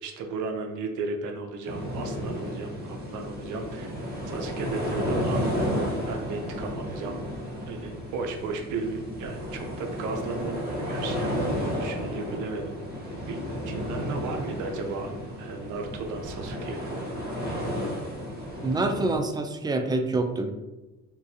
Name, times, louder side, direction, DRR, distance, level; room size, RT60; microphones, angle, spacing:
voice 1, 0.0-3.9 4.2-7.2 7.7-11.2 11.6-12.7 13.3-13.4 13.7-15.1 15.4-17.1, right 3 dB, 85° right, 4 dB, 0.6 m, -35 dB
sound 1, 1.6-19.2, equal, 30° right, 1.0 m, -32 dB
voice 2, 18.6-20.5, right 2 dB, 15° right, 6 dB, 0.3 m, -26 dB
3.7 x 2.4 x 2.7 m, 1.1 s
cardioid pair, 90°, 30 cm